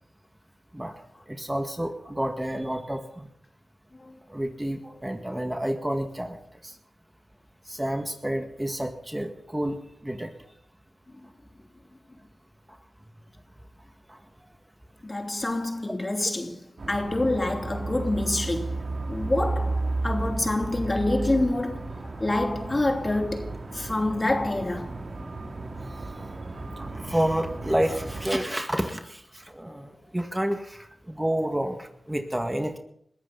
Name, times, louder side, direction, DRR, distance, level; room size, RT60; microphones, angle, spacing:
voice 1, 1.3-3.3 4.3-6.4 6.6-6.7 7.7-10.3 14.1-14.2 26.8-32.8, right 1 dB, 15° right, 2.0 m, -29 dB
voice 2, 15.0-18.8 19.1-21.9 22.2-24.9 29.7-29.8, left 2 dB, 35° left, 2.8 m, -27 dB
sound 1, 16.8-28.3, right 2 dB, 60° right, 2.5 m, -33 dB
21.5 x 14.0 x 4.1 m
cardioid pair, 45°, 0 cm